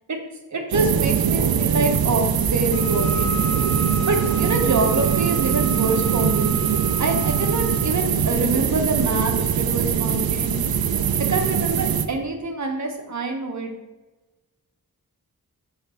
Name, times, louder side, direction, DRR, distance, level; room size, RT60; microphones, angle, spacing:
voice 1, 0.5-3.4 4.0-6.5 7.0-10.6 11.3-13.7, right 2 dB, 55° right, 4 dB, 1.0 m, -26 dB
sound 1, 0.7-12.1, right 8 dB, 80° right, 0.5 m, -22 dB
Wind instrument woodwind instrument, 2.7-7.9, equal, 80° left, 0.7 m, -35 dB
5.7 x 3.3 x 5.5 m, 1.2 s
wide cardioid pair, 75°, 35 cm